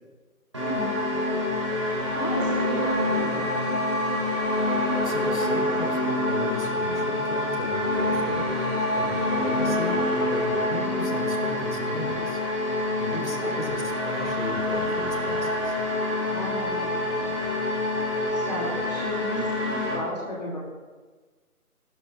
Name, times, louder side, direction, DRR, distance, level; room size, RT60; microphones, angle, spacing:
sound 1, 0.5-19.9, left 1 dB, 20° right, 2.7 m, -26 dB
voice 1, 0.6-1.4 2.1-3.6 16.2-17.6 18.3-20.6, left 1 dB, 25° left, -5 dB, 2.9 m, -35 dB
voice 2, 5.0-8.6 8.9-12.4 13.0-15.8, left 2 dB, 60° left, 1 dB, 3.7 m, -35 dB
29.5 x 13.0 x 3.5 m, 1.3 s
figure-of-eight pair, 180°, 45 cm